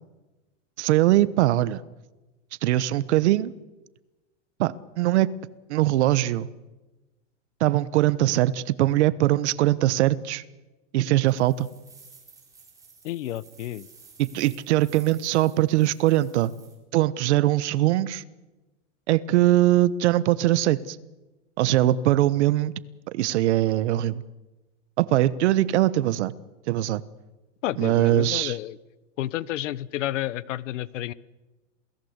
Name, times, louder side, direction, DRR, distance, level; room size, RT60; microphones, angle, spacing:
voice 1, 0.8-1.8 2.6-3.5 4.6-5.3 5.7-6.5 7.6-10.4 10.9-11.7 14.2-16.5 16.9-18.2 19.1-21.0 21.6-22.7 23.1-24.2 25.0-26.3 26.7-27.0 27.8-28.6, right 14 dB, 65° right, 17 dB, 1.2 m, -21 dB
sound 1, 11.2-16.8, right 5 dB, 10° right, 4.3 m, -53 dB
voice 2, 13.0-13.9 27.6-28.8 29.2-31.1, left 13 dB, 80° left, 19 dB, 1.1 m, -30 dB
28.0 x 18.0 x 8.1 m, 1.1 s
supercardioid pair, 170°, 37 cm